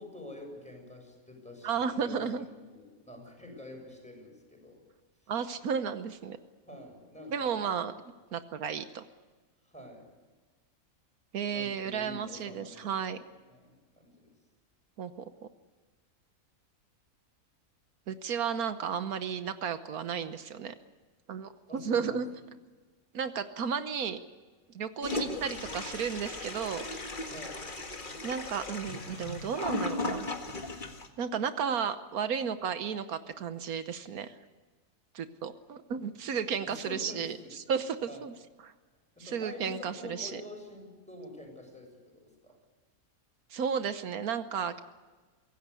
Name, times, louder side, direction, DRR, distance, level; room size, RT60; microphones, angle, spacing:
voice 1, 0.0-4.8 6.6-7.6 9.7-10.1 11.5-14.3 21.7-22.2 27.3-27.6 36.6-37.5 38.1-38.3 39.1-42.5, left 1 dB, 5° left, 1 dB, 6.8 m, -47 dB
voice 2, 1.6-2.5 5.3-6.4 7.3-7.9 8.3-9.1 11.3-13.2 15.0-15.3 18.1-20.7 21.3-22.3 23.1-24.2 24.7-26.8 28.2-30.3 31.2-34.4 35.1-38.3 38.6-38.7 39.2-40.4 43.5-44.8, right 7 dB, 80° right, 10 dB, 1.4 m, -33 dB
Toilet flush, 25.0-31.1, left 3 dB, 35° left, 1.9 m, -37 dB
24.5 x 17.0 x 8.3 m, 1.4 s
omnidirectional pair, 1.5 m